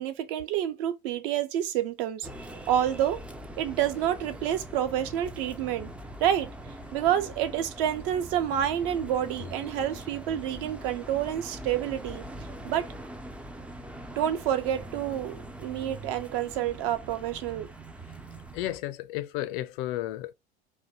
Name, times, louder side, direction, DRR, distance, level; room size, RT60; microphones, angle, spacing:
voice 1, 0.0-2.3 2.7-3.2 3.6-5.9 6.2-6.5 6.9-12.2 12.6-12.9 14.2-17.7, right 10 dB, 60° right, 0.7 m, -28 dB
sound 1, 2.2-18.8, right 1 dB, 5° right, 0.3 m, -42 dB
voice 2, 18.5-20.3, left 14 dB, 55° left, 0.5 m, -33 dB
2.6 x 2.1 x 4.0 m
figure-of-eight pair, 75°, 31 cm